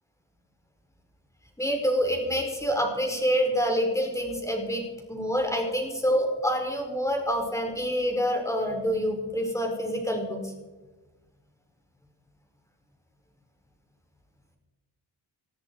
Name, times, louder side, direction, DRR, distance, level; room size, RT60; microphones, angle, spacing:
voice 1, 1.6-4.8 5.1-10.5, equal, 5° left, 2 dB, 4.9 m, -27 dB
20.5 x 13.5 x 4.7 m, 1.2 s
cardioid pair, 80°, 40 cm